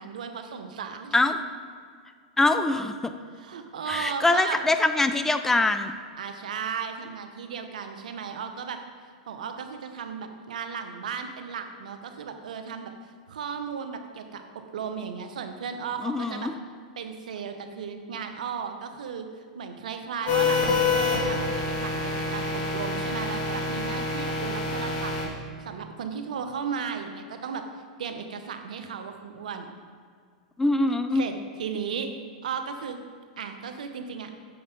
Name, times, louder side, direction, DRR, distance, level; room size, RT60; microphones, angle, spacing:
voice 1, 0.0-1.3 3.3-4.6 6.2-8.8 9.3-16.5 17.0-19.3 19.6-20.6 20.9-25.3 25.6-27.6 28.0-29.7 31.1-32.1 32.4-33.0 33.4-34.3, right 6 dB, 80° right, 7 dB, 0.8 m, -35 dB
voice 2, 2.4-3.1 3.9-5.9 16.0-16.5 30.6-31.2, left 2 dB, 10° left, 9 dB, 0.4 m, -23 dB
sound 1, 20.3-25.3, left 3 dB, 35° left, 2.1 m, -27 dB
7.7 x 5.4 x 5.2 m, 2.1 s
hypercardioid pair, 120°, 4 cm